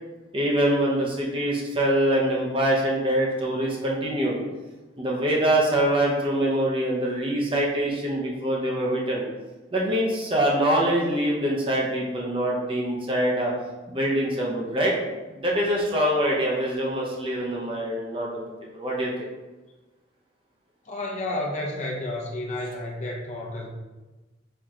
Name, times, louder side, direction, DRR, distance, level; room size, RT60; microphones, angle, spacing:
voice 1, 0.3-4.4 5.0-9.2 9.7-13.5 13.9-14.9 15.3-18.5 18.7-19.1, right 1 dB, 30° right, -3 dB, 0.9 m, -24 dB
voice 2, 20.9-23.7, left 1 dB, 40° left, -2 dB, 0.8 m, -31 dB
4.5 x 3.0 x 3.7 m, 1.2 s
head